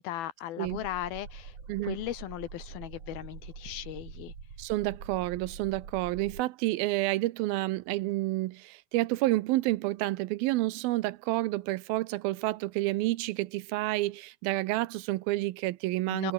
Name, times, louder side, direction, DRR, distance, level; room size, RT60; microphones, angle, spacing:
voice 1, 0.0-1.5 1.8-4.3 16.1-16.3, left 12 dB, 85° left, 3.4 m, -37 dB
sound 1, 0.6-6.4, right 5 dB, 55° right, 5.5 m, -45 dB
voice 2, 4.6-16.3, right 18 dB, 85° right, 2.6 m, -29 dB
omnidirectional pair, 4.2 m